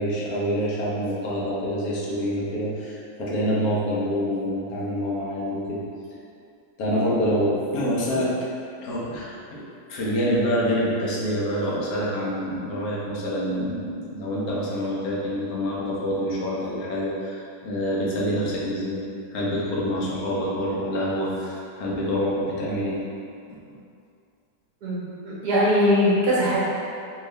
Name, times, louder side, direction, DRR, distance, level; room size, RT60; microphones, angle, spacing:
voice 1, 0.0-5.8 6.8-8.3 8.8-23.0, equal, 65° left, -6 dB, 1.1 m, -26 dB
voice 2, 24.8-26.6, equal, 70° right, -8 dB, 1.6 m, -21 dB
3.5 x 2.7 x 3.2 m, 2.5 s
omnidirectional pair, 1.8 m